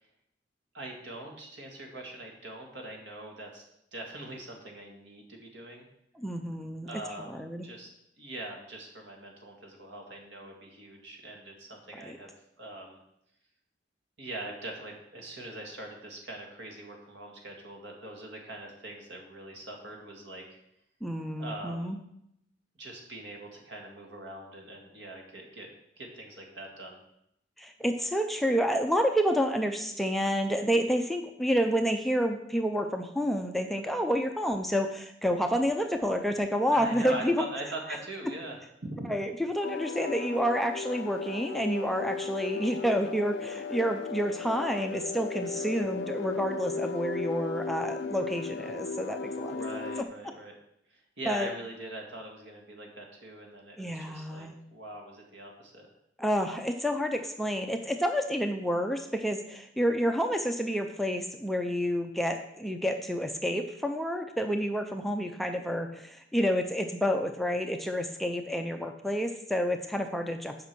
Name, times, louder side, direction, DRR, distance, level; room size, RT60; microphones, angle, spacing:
voice 1, 0.7-3.6 3.9-5.9 6.8-7.9 8.2-13.0 14.2-20.6 21.4-22.0 22.8-27.0 36.7-39.1 49.5-50.5 50.9-55.9, right 1 dB, 70° right, 2 dB, 1.9 m, -42 dB
voice 2, 6.1-6.9 7.2-7.7 12.1-12.2 21.0-22.0 27.6-37.4 39.1-50.1 51.3-51.5 53.8-54.6 56.2-70.7, equal, ahead, 5 dB, 0.5 m, -29 dB
sound 1, 39.6-50.0, left 4 dB, 65° left, 0.4 m, -36 dB
8.3 x 5.2 x 6.1 m, 0.78 s
head